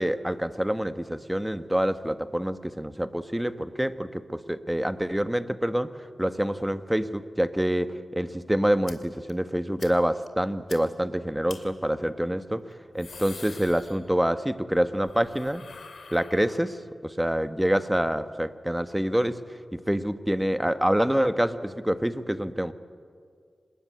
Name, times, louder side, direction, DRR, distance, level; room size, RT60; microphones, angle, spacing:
voice 1, 0.0-5.9 6.2-12.6 12.9-15.6 16.1-16.8 17.0-19.4 19.7-22.7, equal, 10° right, 11 dB, 1.2 m, -26 dB
sound 1, 8.9-9.0 9.3-9.4 9.8-9.9 10.3-10.4 10.7-10.8 11.5-11.6 12.7-14.4 14.7-16.8, left 4 dB, 75° left, 2.6 m, -45 dB
27.0 x 20.5 x 9.4 m, 2.1 s
wide cardioid pair, 70°, 0 cm